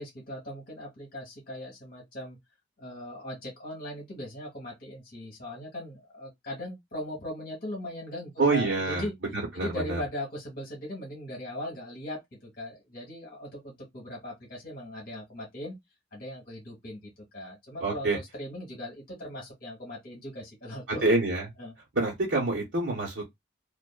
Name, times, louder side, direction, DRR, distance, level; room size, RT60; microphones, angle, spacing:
voice 1, 0.0-2.4 2.8-9.1 9.5-15.8 16.1-21.1 21.6-21.7, left 1 dB, 50° left, 1.1 m, -39 dB
voice 2, 8.4-10.0 17.8-18.2 21.0-21.5 21.9-23.3, right 2 dB, 80° right, 1.0 m, -27 dB
2.5 x 2.5 x 2.3 m
head